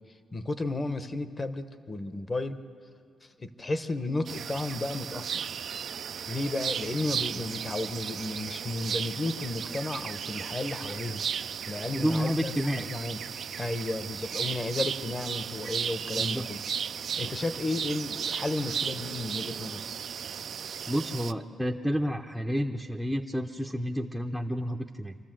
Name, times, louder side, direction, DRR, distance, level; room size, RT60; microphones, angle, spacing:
voice 1, 0.3-2.6 3.2-5.4 6.3-11.2 11.7-13.2 13.6-16.6 16.9-19.9, left 2 dB, 25° left, 11 dB, 1.0 m, -33 dB
sound 1, 4.3-21.3, right 7 dB, 60° right, 0.4 m, -35 dB
voice 2, 11.9-12.9 16.2-16.5 20.9-25.2, equal, ahead, 1 dB, 0.7 m, -30 dB
26.0 x 13.5 x 7.7 m, 2.5 s
cardioid pair, 100°, 0 cm